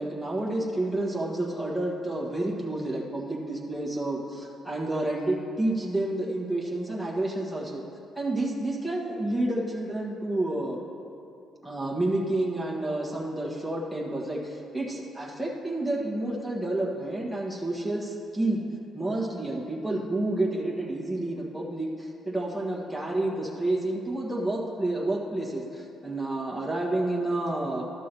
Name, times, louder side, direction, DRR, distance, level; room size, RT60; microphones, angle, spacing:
voice 1, 0.0-7.8 8.1-10.8 11.6-18.6 18.9-27.8, right 1 dB, ahead, -4 dB, 1.5 m, -29 dB
12.0 x 6.2 x 4.5 m, 2.7 s
cardioid pair, 90°, 0 cm